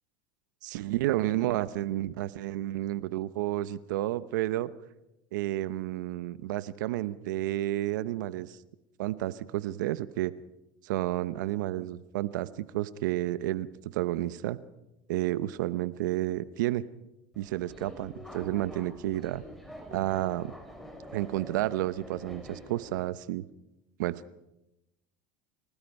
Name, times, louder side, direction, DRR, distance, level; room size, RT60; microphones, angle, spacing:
voice 1, 0.6-4.7 5.3-8.6 9.0-10.3 10.8-14.6 15.1-16.8 17.4-19.4 19.9-20.5 21.1-23.4 24.0-24.4, right 15 dB, 85° right, 16 dB, 0.8 m, -31 dB
Subway metro underground, 17.3-23.0, equal, ahead, 5.3 m, -46 dB
29.0 x 18.0 x 5.3 m, 0.91 s
supercardioid pair, 110°, 10 cm